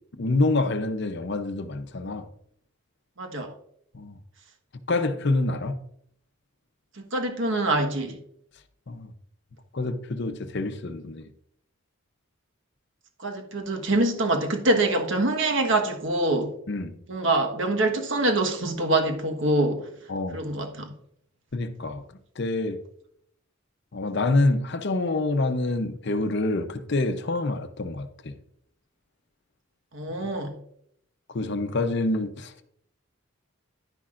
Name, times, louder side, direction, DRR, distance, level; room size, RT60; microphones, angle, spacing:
voice 1, 0.2-2.3 3.9-4.2 4.9-5.8 8.9-9.1 9.7-11.3 16.7-16.9 20.1-20.4 21.5-22.0 22.4-22.8 23.9-28.3 31.3-32.7, left 2 dB, 55° left, 0.7 m, -27 dB
voice 2, 3.2-3.5 6.9-8.2 13.2-16.6 17.1-19.9 20.3-20.9 29.9-30.6, right 2 dB, 60° right, 1.4 m, -25 dB
11.0 x 10.0 x 2.5 m
head